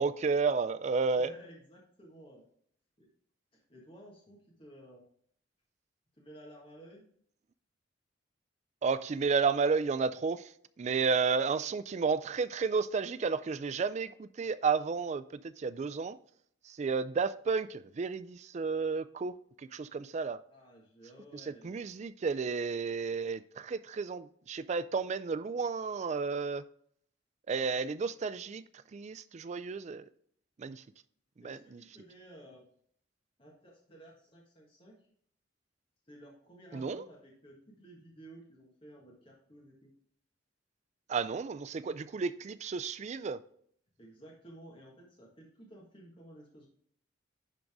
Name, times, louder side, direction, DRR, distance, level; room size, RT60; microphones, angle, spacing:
voice 1, 0.0-1.3 8.8-10.5 10.8-16.2 16.7-19.4 19.7-20.4 21.3-26.6 27.5-28.6 28.9-30.0 30.6-30.8 31.4-31.8 36.7-37.1 41.1-43.4, right 5 dB, 35° right, 0.3 m, -32 dB
voice 2, 1.1-2.5 3.0-3.1 3.5-5.0 6.2-7.0 20.5-21.7 31.4-32.7 33.4-34.9 36.1-39.9 44.0-46.7, right 1 dB, 30° left, 1.7 m, -54 dB
10.5 x 3.9 x 3.6 m
head